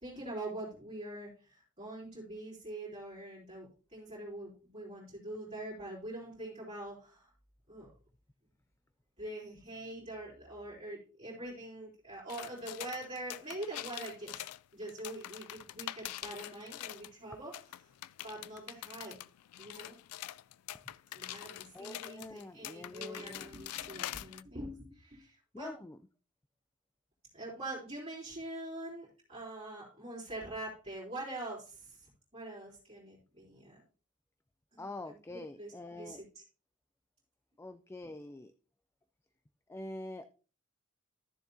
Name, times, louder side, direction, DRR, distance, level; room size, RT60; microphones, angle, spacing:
voice 1, 0.0-7.3 7.7-7.9 9.2-14.5 14.7-17.5 18.2-19.2 19.6-20.0 21.1-25.7 27.3-33.8 34.7-36.4, right 1 dB, 30° right, -8 dB, 3.5 m, -44 dB
sound 1, 12.3-17.1 17.5-24.4, left 14 dB, 85° left, 0.3 m, -45 dB
voice 2, 21.4-23.5 25.5-26.0 34.8-36.2 37.6-38.5 39.7-40.3, left 2 dB, 10° left, 10 dB, 0.3 m, -45 dB
13.0 x 7.1 x 2.8 m, 0.37 s
head